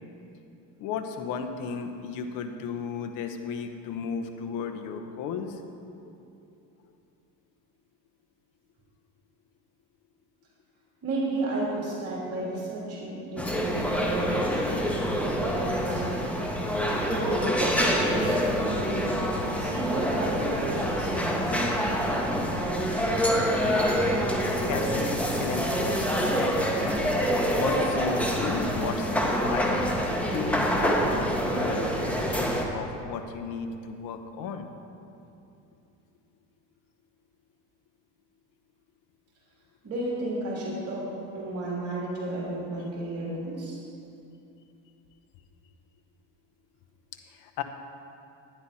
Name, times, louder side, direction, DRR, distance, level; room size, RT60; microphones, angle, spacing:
voice 1, 0.8-5.6 6.0-6.1 24.6-26.5 27.4-29.9 30.2-34.7 47.3-47.6, left 6 dB, 65° left, 6 dB, 1.1 m, -34 dB
voice 2, 11.0-14.8 15.4-16.3 17.0-19.2 19.6-22.1 39.8-41.1 41.3-43.8, right 2 dB, 45° right, -5 dB, 2.9 m, -33 dB
sound 1, 13.4-32.6, equal, 5° left, 1.2 m, -26 dB
11.5 x 10.0 x 4.2 m, 2.7 s
cardioid pair, 115°, 34 cm